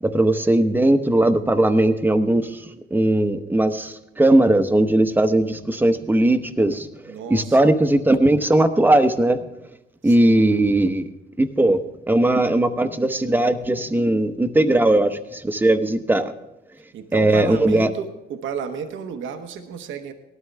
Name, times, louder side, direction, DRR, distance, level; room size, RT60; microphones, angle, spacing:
voice 1, 0.0-9.4 10.0-11.1 11.4-11.8 12.1-16.3 17.1-17.9, right 1 dB, 10° right, 8 dB, 0.9 m, -19 dB
voice 2, 7.1-7.7 10.0-10.4 16.9-20.1, right 7 dB, 75° right, 6 dB, 1.0 m, -32 dB
18.0 x 12.5 x 3.4 m, 0.92 s
cardioid pair, 90°, 20 cm